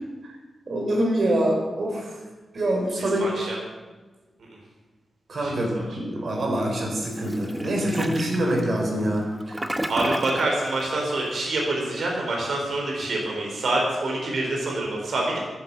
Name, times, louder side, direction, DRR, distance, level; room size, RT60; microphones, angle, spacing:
voice 1, 0.7-2.2 2.5-3.3 5.3-9.7, right 1 dB, 50° right, 1 dB, 4.2 m, -25 dB
voice 2, 3.2-3.6 4.4-4.5 5.4-5.8 9.9-15.4, right 2 dB, 70° right, -1 dB, 4.1 m, -26 dB
Toilet flush, 7.1-10.6, right 1 dB, 10° right, 0.8 m, -32 dB
14.0 x 11.5 x 7.4 m, 1.3 s
wide cardioid pair, 175°, 0 cm